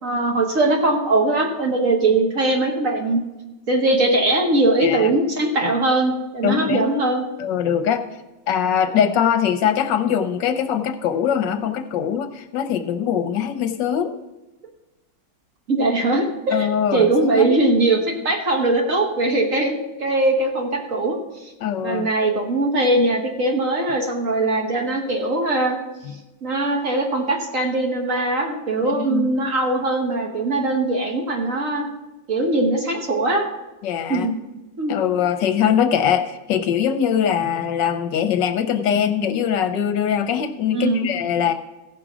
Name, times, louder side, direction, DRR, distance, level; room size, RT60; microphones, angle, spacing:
voice 1, 0.0-3.2 3.7-7.2 15.7-21.2 21.8-25.8 26.4-31.9 32.3-33.5 34.1-34.3 34.8-34.9 40.7-41.1, right 2 dB, 45° right, 1 dB, 1.5 m, -21 dB
voice 2, 6.4-6.9 7.4-8.1 8.5-14.2 16.5-17.1 17.3-17.5 21.6-22.1 28.9-29.3 33.8-34.3 34.9-41.5, left 8 dB, 75° left, 8 dB, 1.2 m, -22 dB
15.5 x 6.0 x 4.9 m, 1.1 s
omnidirectional pair, 2.1 m